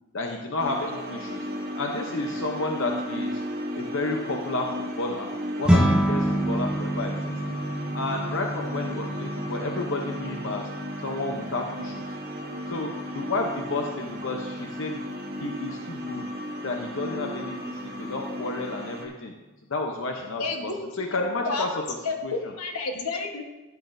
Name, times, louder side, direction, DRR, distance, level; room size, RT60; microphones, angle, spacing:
voice 1, 0.1-1.5 1.8-3.4 3.7-5.3 5.6-7.4 7.9-10.7 11.0-12.1 12.7-15.0 15.4-16.2 16.6-19.3 19.7-20.7 21.0-21.7 22.2-22.5, left 2 dB, 60° left, 2 dB, 0.7 m, -31 dB
sound 1, 0.6-19.1, equal, 45° right, 1.3 m, -35 dB
sound 2, 5.7-15.1, right 1 dB, 5° right, 0.9 m, -29 dB
voice 2, 20.4-20.7 21.1-21.7 22.0-23.4, left 3 dB, 85° left, 3 dB, 1.2 m, -30 dB
12.0 x 8.2 x 2.6 m, 1.1 s
head